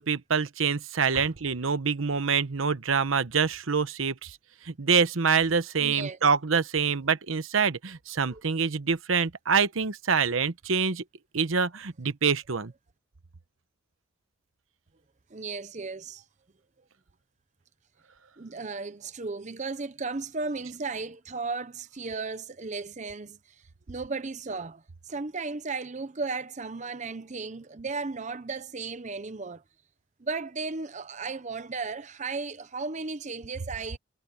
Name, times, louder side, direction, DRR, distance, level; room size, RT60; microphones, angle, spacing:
voice 1, 0.0-4.4 4.6-11.0 11.3-12.7, right 5 dB, 85° right, 0.9 m, -26 dB
voice 2, 5.8-6.2 8.3-8.4 15.3-16.2 18.4-23.4 23.9-29.6 30.2-34.0, right 4 dB, 35° right, 0.7 m, -35 dB
head